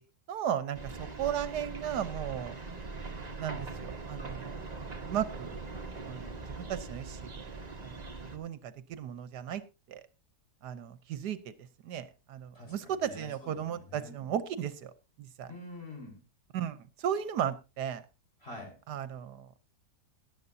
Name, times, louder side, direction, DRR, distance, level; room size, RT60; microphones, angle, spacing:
voice 1, 0.3-2.5 3.4-4.6 5.0-5.6 6.0-8.0 8.3-9.6 9.9-10.0 10.6-11.5 11.8-14.9 15.2-15.5 16.5-18.0 18.9-19.6, right 9 dB, 80° right, 13 dB, 1.4 m, -35 dB
sound 1, 0.7-8.4, right 3 dB, 25° right, 1.5 m, -41 dB
voice 2, 12.5-14.2 15.5-16.2 18.4-18.8, left 2 dB, 35° left, 1 dB, 4.9 m, -46 dB
17.5 x 11.0 x 2.7 m, 0.28 s
omnidirectional pair, 1.8 m